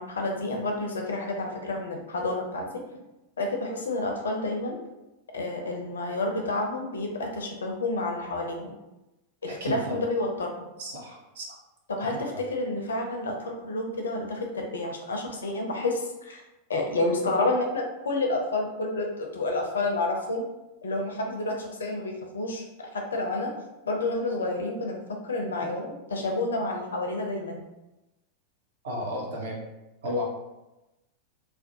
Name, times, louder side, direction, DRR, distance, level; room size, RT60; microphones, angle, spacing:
voice 1, 0.0-2.7 3.4-4.8 5.3-8.7 9.4-10.7 11.9-16.4 16.7-20.4 20.8-23.5 23.9-27.6, left 2 dB, 70° left, 2 dB, 0.4 m, -29 dB
voice 2, 9.6-9.9 10.8-11.6 28.8-29.6 30.0-30.3, left 1 dB, 60° right, -1 dB, 0.6 m, -32 dB
2.4 x 2.0 x 2.7 m, 0.99 s
figure-of-eight pair, 90°, 0 cm